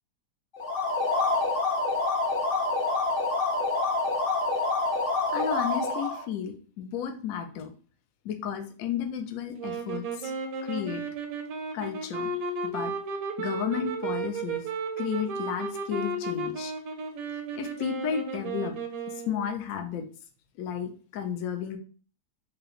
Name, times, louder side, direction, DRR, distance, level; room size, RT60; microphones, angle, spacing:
sound 1, 0.5-6.2, left 3 dB, 40° left, 0.8 m, -27 dB
voice 1, 5.3-7.7 8.2-10.3 10.6-11.0 11.7-12.3 12.7-12.9 13.4-14.6 15.0-16.7 17.6-18.8 19.1-20.1 20.6-21.8, left 7 dB, 70° left, 6 dB, 0.9 m, -33 dB
sound 2, 9.6-19.6, right 3 dB, 65° right, 1.0 m, -34 dB
4.8 x 2.5 x 3.0 m, 0.41 s
omnidirectional pair, 1.8 m